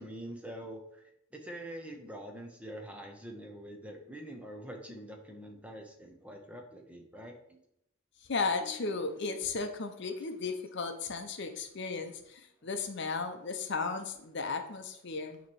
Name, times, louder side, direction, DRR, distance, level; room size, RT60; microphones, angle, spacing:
voice 1, 0.0-7.6, right 1 dB, 5° right, 3 dB, 0.7 m, -45 dB
voice 2, 8.2-15.4, left 4 dB, 55° left, 7 dB, 0.7 m, -35 dB
8.9 x 3.0 x 4.5 m, 0.76 s
head